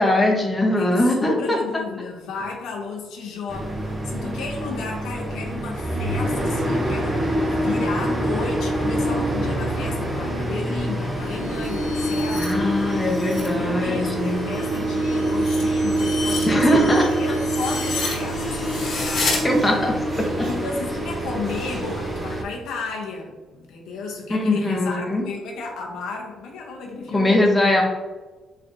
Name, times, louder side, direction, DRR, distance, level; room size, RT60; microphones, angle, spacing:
voice 1, 0.0-1.6 12.4-14.4 16.5-17.1 19.4-20.5 24.3-25.2 27.1-27.8, left 1 dB, 15° left, -1 dB, 0.8 m, -21 dB
voice 2, 0.8-13.1 13.5-19.4 20.5-27.4, left 4 dB, 85° left, 0 dB, 0.7 m, -33 dB
sound 1, 3.5-22.4, right 1 dB, 15° right, 0.7 m, -25 dB
sound 2, 11.1-13.5 13.9-19.4, left 4 dB, 65° left, 1.1 m, -32 dB
sound 3, 19.2-23.0, right 1 dB, 50° right, 1.5 m, -43 dB
3.8 x 3.2 x 2.6 m, 1.2 s
cardioid pair, 90°, 0 cm